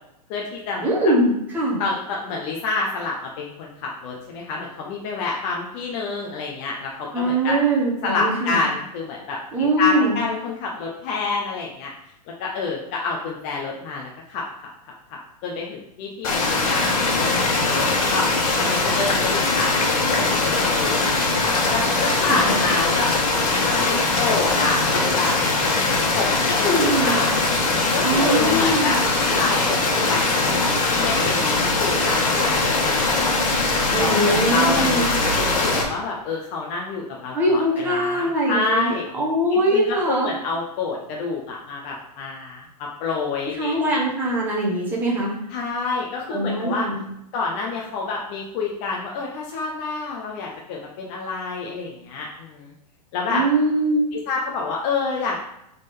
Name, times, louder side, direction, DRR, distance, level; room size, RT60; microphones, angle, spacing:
voice 1, 0.3-0.9 1.8-7.6 8.0-11.9 12.4-14.7 15.1-23.1 23.6-25.4 26.1-27.3 27.9-30.2 30.9-33.4 33.9-35.0 35.3-39.1 39.5-43.8 45.5-46.9 47.3-52.7 53.1-53.4 54.3-55.4, left 4 dB, 20° left, -2 dB, 0.5 m, -28 dB
voice 2, 0.8-1.8 7.1-8.6 9.5-10.2 22.3-22.6 26.7-27.3 28.0-28.9 33.9-35.1 37.3-40.3 43.6-45.4 46.3-47.0 53.3-54.1, right 1 dB, 10° right, -3 dB, 1.0 m, -22 dB
sound 1, 16.2-35.8, left 3 dB, 55° left, 1.7 m, -21 dB
6.4 x 3.8 x 4.2 m, 0.80 s
hypercardioid pair, 175°, 21 cm